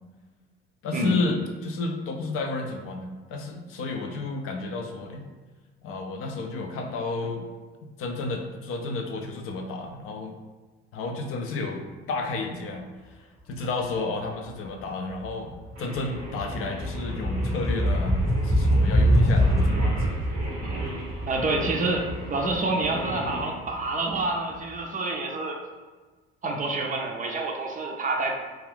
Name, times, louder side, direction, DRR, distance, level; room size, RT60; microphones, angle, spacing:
voice 1, 0.8-5.2 5.8-7.5 8.0-10.3 10.9-11.8 12.1-20.2, left 3 dB, 45° left, 3 dB, 0.4 m, -32 dB
sound 1, 14.6-14.9 15.2-24.1, equal, 10° left, 0.9 m, -25 dB
Singing, 15.8-23.5, right 1 dB, 90° right, 0.7 m, -38 dB
voice 2, 21.3-25.6 26.4-28.4, right 2 dB, 25° right, 1 dB, 0.5 m, -27 dB
2.5 x 2.3 x 3.3 m, 1.3 s
figure-of-eight pair, 55°, 31 cm